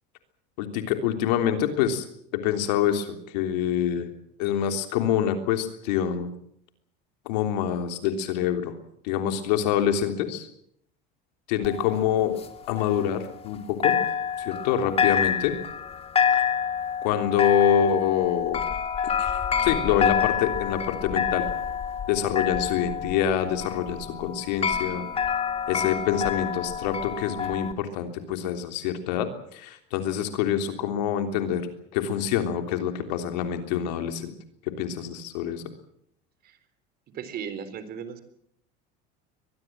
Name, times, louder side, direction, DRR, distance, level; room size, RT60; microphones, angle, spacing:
voice 1, 0.6-2.0 2.3-4.1 4.4-6.3 7.2-8.7 9.0-10.5 11.5-12.3 12.7-14.0 14.4-15.5 17.0-18.6 19.2-19.3 19.6-21.4 22.1-25.0 25.7-31.7 31.9-34.3 34.8-35.6, left 9 dB, 85° left, 6 dB, 3.4 m, -26 dB
sound 1, 11.6-13.6 13.8-27.7, left 7 dB, 30° left, 2.7 m, -27 dB
voice 2, 37.1-38.2, right 7 dB, 45° right, 12 dB, 3.8 m, -36 dB
23.5 x 20.0 x 7.7 m, 0.69 s
supercardioid pair, 120°, 21 cm